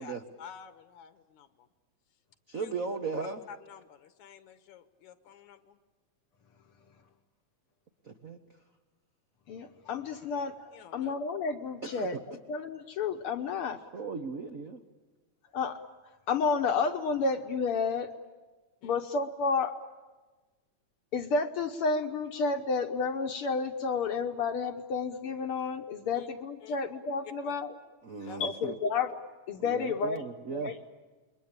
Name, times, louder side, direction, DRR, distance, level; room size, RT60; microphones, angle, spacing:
voice 1, 0.0-1.7 2.5-2.8 3.5-5.8 10.7-11.1 18.8-19.0 26.1-26.3 26.6-26.8 27.2-27.5 28.3-28.4, left 7 dB, 80° left, 11 dB, 2.6 m, -50 dB
voice 2, 2.5-3.4 8.1-8.4 11.8-12.1 13.9-14.8 28.0-28.7 29.6-30.7, right 4 dB, 65° right, 5 dB, 0.8 m, -37 dB
voice 3, 9.5-13.8 15.5-15.8 16.3-18.1 18.8-19.7 21.1-27.7 28.4-29.2 29.5-30.8, left 4 dB, 60° left, 7 dB, 1.6 m, -31 dB
28.5 x 22.5 x 8.8 m, 1.3 s
omnidirectional pair, 3.3 m